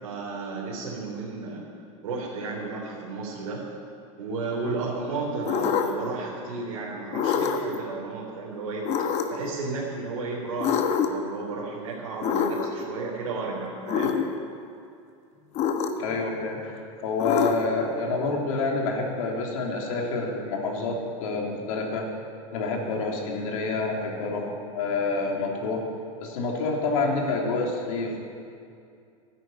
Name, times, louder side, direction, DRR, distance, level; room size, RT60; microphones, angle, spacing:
voice 1, 0.0-1.6 2.0-3.6 4.2-8.9 9.3-14.1, right 3 dB, 90° right, -5 dB, 3.7 m, -33 dB
sound 1, 5.5-6.1 7.1-7.8 8.8-9.5 10.6-11.3 12.2-12.9 13.9-14.3 15.5-16.2 17.2-17.8, left 7 dB, 40° left, 1.2 m, -25 dB
voice 2, 16.0-22.1 22.5-25.8 26.2-28.3, left 3 dB, 70° left, 0 dB, 3.4 m, -28 dB
13.0 x 10.5 x 9.2 m, 2.4 s
supercardioid pair, 130°, 18 cm